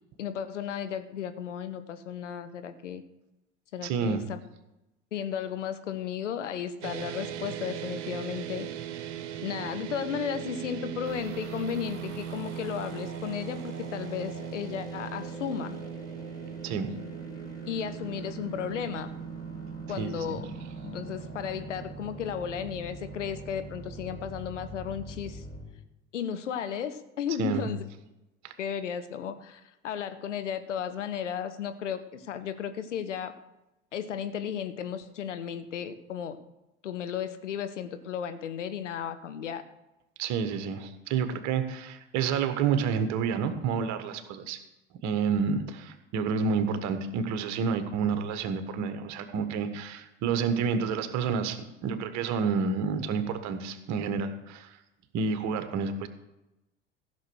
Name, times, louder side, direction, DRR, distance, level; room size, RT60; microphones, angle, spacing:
voice 1, 0.2-3.0 3.7-4.4 5.1-8.7 9.4-15.8 17.7-19.1 19.9-20.5 20.8-25.4 26.1-27.8 28.6-33.3 33.9-36.4 36.8-39.6, left 8 dB, 80° left, 10 dB, 1.0 m, -34 dB
voice 2, 3.8-4.2 16.6-16.9 20.0-20.4 27.4-27.7 28.4-28.5 40.2-44.6 45.0-54.7 55.1-56.1, right 6 dB, 50° right, 9 dB, 1.4 m, -29 dB
sound 1, 6.8-23.2, right 9 dB, 65° right, 1.2 m, -39 dB
sound 2, 11.0-25.6, right 1 dB, 25° left, 4.9 m, -45 dB
15.0 x 6.4 x 6.3 m, 0.95 s
figure-of-eight pair, 70°, 36 cm